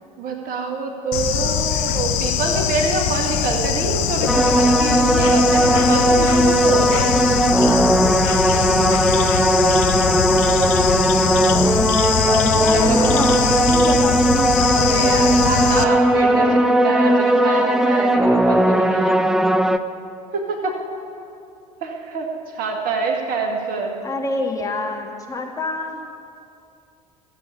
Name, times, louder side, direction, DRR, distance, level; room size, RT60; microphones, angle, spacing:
voice 1, 0.2-7.2 8.5-9.0 12.0-13.1 14.7-19.2 20.3-20.7 21.8-24.0, right 4 dB, 45° right, 2 dB, 2.0 m, -26 dB
Bird / Insect, 1.1-15.8, left 9 dB, 55° left, 0.8 m, -22 dB
sound 1, 4.3-19.8, right 1 dB, ahead, 0.5 m, -17 dB
voice 2, 7.3-8.0 12.5-14.7 24.0-26.0, left 2 dB, 15° left, 1 dB, 1.9 m, -28 dB
15.5 x 8.3 x 8.5 m, 2.6 s
figure-of-eight pair, 65°, 21 cm